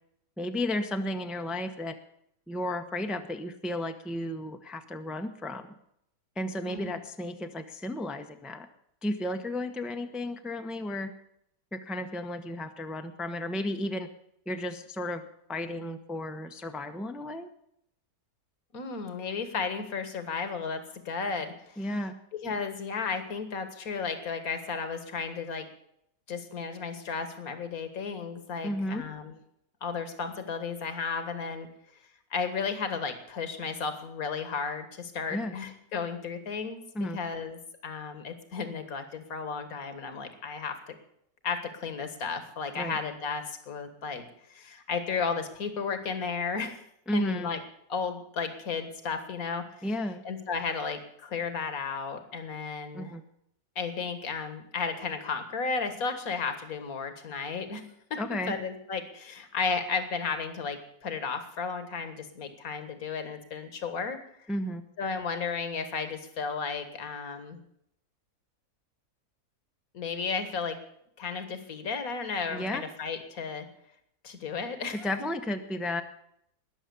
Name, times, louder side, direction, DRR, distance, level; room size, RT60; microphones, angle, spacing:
voice 1, 0.4-2.0 2.5-5.7 6.4-8.7 9.0-11.1 11.7-14.1 14.5-15.2 15.5-17.5 21.8-22.2 28.6-29.0 35.3-35.6 36.9-37.2 42.8-43.0 47.1-47.5 49.8-50.2 52.9-53.2 58.2-58.5 64.5-64.8 72.5-72.8 75.0-76.0, left 1 dB, ahead, 7 dB, 0.7 m, -33 dB
voice 2, 6.7-7.0 18.7-21.9 22.4-25.7 26.3-29.3 29.8-31.7 32.3-41.0 41.4-44.2 44.5-46.8 47.1-47.6 47.9-49.9 50.2-53.2 53.8-57.8 58.1-58.2 58.5-64.2 65.0-67.6 69.9-70.8 71.2-73.7 74.2-75.1, left 5 dB, 65° left, 9 dB, 2.1 m, -34 dB
20.0 x 7.3 x 7.0 m, 0.74 s
omnidirectional pair, 1.7 m